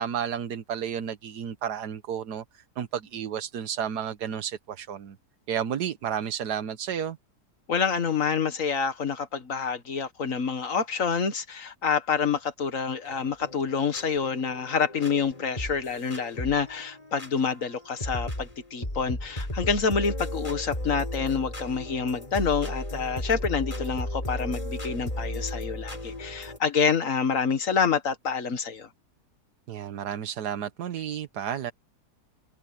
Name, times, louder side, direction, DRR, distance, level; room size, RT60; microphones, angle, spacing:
voice 1, 0.0-5.2 5.5-7.2 29.7-31.7, right 8 dB, 90° right, 1.6 m, -32 dB
voice 2, 7.7-28.9, left 6 dB, 55° left, 1.8 m, -27 dB
sound 1, 13.0-26.6, left 1 dB, 20° left, 4.6 m, -35 dB
omnidirectional pair, 1.7 m